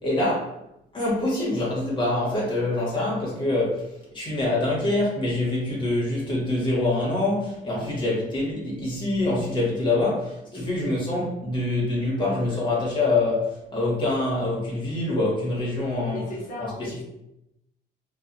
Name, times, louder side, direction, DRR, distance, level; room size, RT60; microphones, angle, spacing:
voice 1, 0.0-0.6 0.9-3.9 4.1-16.2 16.6-16.7, left 2 dB, 25° left, -4 dB, 1.3 m, -25 dB
voice 2, 16.1-17.0, left 2 dB, 55° left, -2 dB, 0.9 m, -38 dB
2.4 x 2.3 x 2.6 m, 0.84 s
cardioid pair, 110°, 17 cm